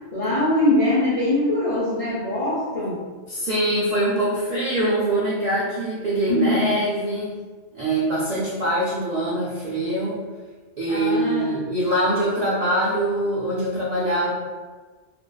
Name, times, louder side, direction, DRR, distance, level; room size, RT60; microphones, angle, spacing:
voice 1, 0.1-3.0 6.3-6.8 10.9-11.6, left 1 dB, 60° left, -9 dB, 0.3 m, -22 dB
voice 2, 3.3-7.3 7.7-10.2 10.8-14.3, right 1 dB, 80° right, -7 dB, 0.3 m, -23 dB
2.5 x 2.2 x 2.2 m, 1.4 s
omnidirectional pair, 1.3 m